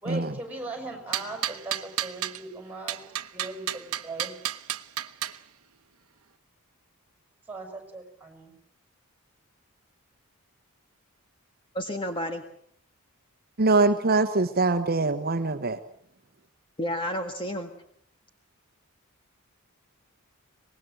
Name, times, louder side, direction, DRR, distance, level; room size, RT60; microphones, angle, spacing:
voice 1, 0.0-3.0 3.3-4.3 7.5-8.5, right 2 dB, 5° right, 4 dB, 6.6 m, -39 dB
sound 1, 1.1-2.4 2.9-5.4, right 11 dB, 70° right, 1.0 m, -32 dB
voice 2, 11.7-12.4 16.8-17.7, equal, 20° left, 5 dB, 1.7 m, -31 dB
voice 3, 13.6-15.8, right 3 dB, 45° right, 8 dB, 1.0 m, -23 dB
24.5 x 20.5 x 7.8 m, 0.66 s
head